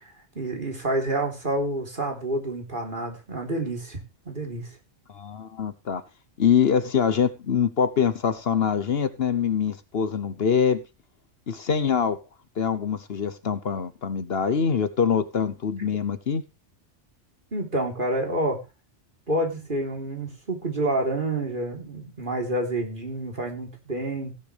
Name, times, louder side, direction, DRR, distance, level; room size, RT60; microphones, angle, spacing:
voice 1, 0.0-4.0 4.3-4.7 15.8-15.9 17.5-18.6 19.3-24.3, right 1 dB, 45° right, 2 dB, 3.7 m, -28 dB
voice 2, 5.1-6.0 6.4-10.8 11.5-12.2 12.6-16.4, left 7 dB, 60° left, 13 dB, 1.1 m, -24 dB
16.5 x 10.0 x 3.4 m, 0.28 s
omnidirectional pair, 1.2 m